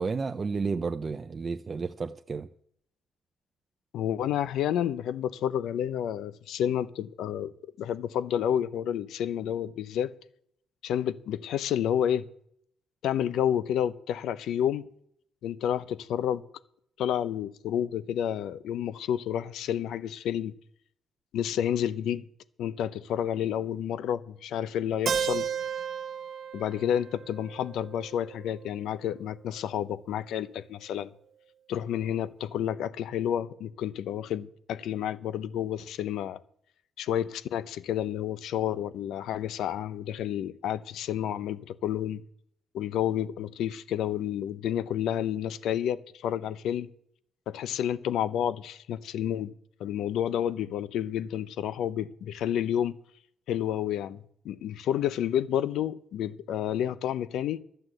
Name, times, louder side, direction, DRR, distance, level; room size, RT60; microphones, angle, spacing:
voice 1, 0.0-2.5, right 4 dB, 35° right, 0.6 m, -31 dB
voice 2, 3.9-7.5 7.8-10.1 10.8-12.3 13.0-14.8 15.4-16.4 17.0-20.5 21.3-22.2 22.6-25.5 26.5-31.1 31.7-36.4 37.0-42.2 42.7-46.9 47.5-49.5 49.8-52.9 53.5-54.2 54.4-57.6, left 10 dB, 80° left, 0.7 m, -30 dB
Keyboard (musical), 25.1-28.9, right 7 dB, 50° right, 1.1 m, -34 dB
12.0 x 7.8 x 7.9 m
cardioid pair, 90°, 0 cm